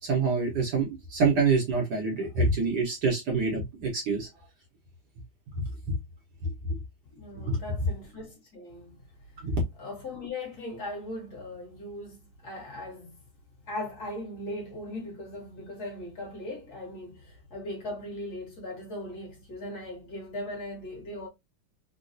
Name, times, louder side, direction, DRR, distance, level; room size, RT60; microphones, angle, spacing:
voice 1, 0.0-4.3 5.6-5.9 6.4-6.5 7.4-7.6 9.4-9.6, right 4 dB, 65° right, 1.2 m, -26 dB
voice 2, 7.1-9.0 9.8-13.1 13.7-21.3, left 1 dB, 50° left, 1.7 m, -39 dB
3.8 x 2.2 x 2.5 m
omnidirectional pair, 2.3 m